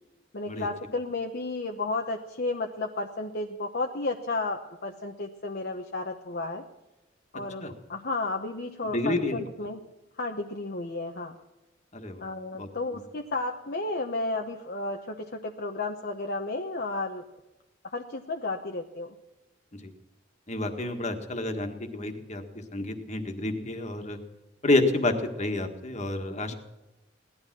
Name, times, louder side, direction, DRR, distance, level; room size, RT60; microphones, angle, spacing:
voice 1, 0.3-6.6 7.3-9.8 10.2-11.3 12.2-17.2 17.9-19.1, left 2 dB, 55° left, 2 dB, 1.0 m, -32 dB
voice 2, 8.8-9.4 11.9-13.0 19.7-19.9 20.5-22.4 22.7-24.2 24.6-26.5, left 2 dB, 35° left, 5 dB, 1.7 m, -29 dB
17.5 x 12.0 x 6.1 m, 1.0 s
head